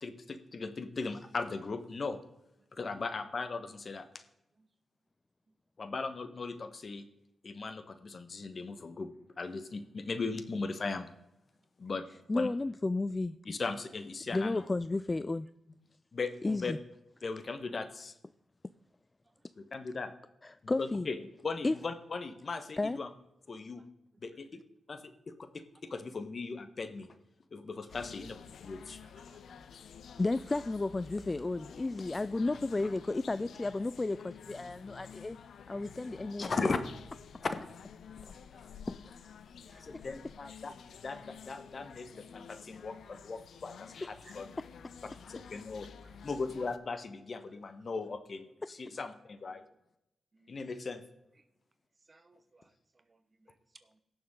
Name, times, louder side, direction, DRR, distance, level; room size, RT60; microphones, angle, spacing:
voice 1, 0.0-2.2 2.7-4.1 5.8-7.0 7.4-9.1 9.4-11.1 11.8-12.0 12.3-12.5 13.4-14.7 16.1-16.7 17.2-18.1 19.6-20.1 20.6-21.2 21.4-23.1 23.5-23.8 24.2-24.5 24.9-27.1 27.5-28.4 28.6-29.0 36.4-36.8 39.8-40.7 41.0-44.5 45.3-45.9 46.2-49.6 50.5-51.0, left 4 dB, 50° left, 10 dB, 1.2 m, -38 dB
voice 2, 12.3-13.4 14.3-15.5 16.4-16.8 20.4-21.1 21.6-21.8 22.8-23.0 30.2-35.4 35.7-36.5 38.9-39.0 39.6-39.8 44.0-44.1 44.6-44.7 48.6-48.7, left 2 dB, 30° left, 15 dB, 0.3 m, -33 dB
sound 1, 27.9-46.8, left 7 dB, 80° left, 0.6 m, -51 dB
voice 3, 28.9-29.9 35.7-36.1 37.3-37.5 38.3-38.4 38.7-38.8 39.7-40.2 43.0-43.2 44.2-44.3 45.3-45.5 48.9-49.0 49.4-49.6 50.3-50.6 52.1-54.0, right 3 dB, 35° right, 11 dB, 1.1 m, -63 dB
17.0 x 7.0 x 3.7 m, 0.86 s
cardioid pair, 65°, 0 cm